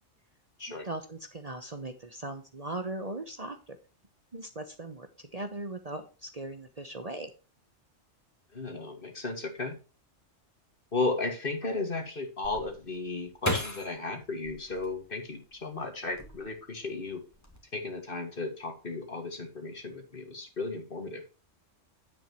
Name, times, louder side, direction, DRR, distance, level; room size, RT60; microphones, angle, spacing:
voice 1, 0.7-3.8 4.3-5.1 5.3-7.3, right 2 dB, 35° right, 7 dB, 1.0 m, -39 dB
voice 2, 8.5-9.8 10.9-17.2 17.7-21.2, left 3 dB, 45° left, 5 dB, 2.2 m, -35 dB
sound 1, 12.4-15.5 16.0-16.8 17.1-17.6, left 1 dB, 15° left, 2.2 m, -36 dB
9.7 x 8.2 x 3.1 m, 0.33 s
omnidirectional pair, 1.3 m